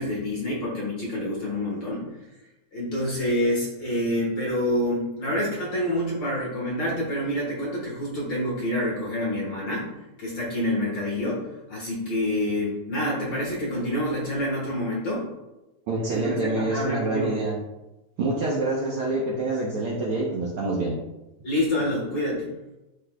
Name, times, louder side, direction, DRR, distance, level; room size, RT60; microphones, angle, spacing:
voice 1, 0.0-2.1 2.7-9.9 10.2-11.4 11.7-15.3 16.1-17.4 21.4-22.5, left 1 dB, 50° left, -4 dB, 1.7 m, -27 dB
voice 2, 15.9-17.6 18.2-21.0, right 2 dB, 70° right, -3 dB, 1.4 m, -26 dB
12.5 x 4.2 x 2.3 m, 1.0 s
omnidirectional pair, 3.4 m